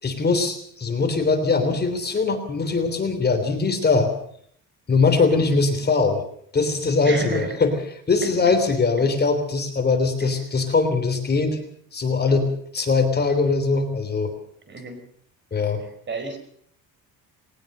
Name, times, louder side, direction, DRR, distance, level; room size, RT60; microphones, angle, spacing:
voice 1, 0.0-4.1 4.9-6.2 6.5-7.7 8.1-11.6 11.9-12.5 12.7-14.3 15.5-15.8, left 4 dB, 30° left, 6 dB, 3.3 m, -21 dB
voice 2, 7.0-7.6 8.2-8.3 9.0-9.1 10.2-10.4 14.7-15.0 15.8-16.4, right 3 dB, 30° right, 8 dB, 4.5 m, -32 dB
21.0 x 18.5 x 6.7 m, 0.63 s
cardioid pair, 140°, 35 cm